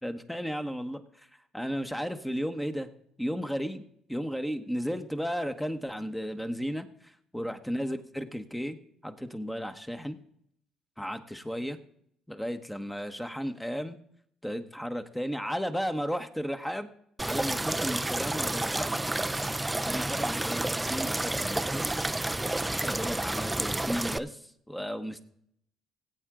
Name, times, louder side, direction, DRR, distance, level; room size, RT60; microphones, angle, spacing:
voice 1, 0.0-1.0 1.5-2.9 3.2-3.8 4.1-8.8 9.0-10.2 11.0-11.8 12.3-14.0 14.4-16.9 17.2-18.9 19.8-21.8 22.8-25.2, equal, 5° left, 8 dB, 1.1 m, -34 dB
sound 1, 17.2-24.2, right 2 dB, 10° right, 0.5 m, -30 dB
17.5 x 8.1 x 3.8 m, 0.71 s
supercardioid pair, 75°, 0 cm